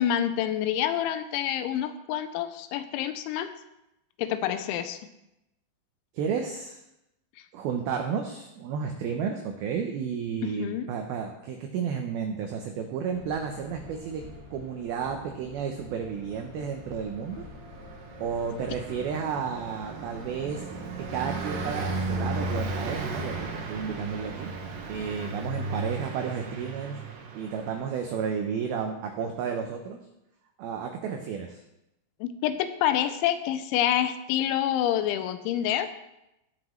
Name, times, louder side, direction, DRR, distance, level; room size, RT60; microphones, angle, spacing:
voice 1, 0.0-3.5 4.2-5.0 10.4-10.9 32.2-35.9, left 10 dB, 85° left, 11 dB, 2.9 m, -27 dB
voice 2, 6.1-6.8 7.5-14.2 14.5-17.5 18.2-20.7 21.1-24.5 24.9-27.0 27.3-30.0 30.6-31.6, right 6 dB, 85° right, 4 dB, 2.1 m, -32 dB
sound 1, 13.1-21.4, left 2 dB, 70° left, 6.0 m, -47 dB
Car passing by, 17.0-28.1, right 3 dB, 70° right, 2.1 m, -35 dB
18.5 x 6.2 x 3.1 m, 0.89 s
omnidirectional pair, 5.4 m